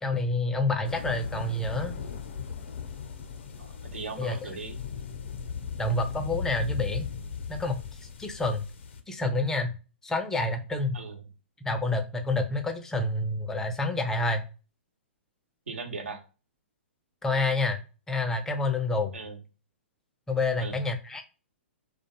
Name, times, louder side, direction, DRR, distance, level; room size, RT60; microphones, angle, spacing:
voice 1, 0.0-2.0 4.2-4.4 5.8-7.1 7.5-8.6 9.1-9.7 10.0-11.0 11.6-14.4 17.2-17.8 18.1-19.1 20.3-21.2, left 2 dB, 5° left, 5 dB, 0.5 m, -28 dB
sound 1, 0.8-9.0, left 6 dB, 65° left, 0.6 m, -37 dB
voice 2, 3.6-4.8 10.9-11.2 15.7-16.2 19.1-19.4 20.6-20.8, right 4 dB, 80° right, 4 dB, 0.9 m, -38 dB
2.3 x 2.2 x 2.9 m, 0.34 s
hypercardioid pair, 125°, 7 cm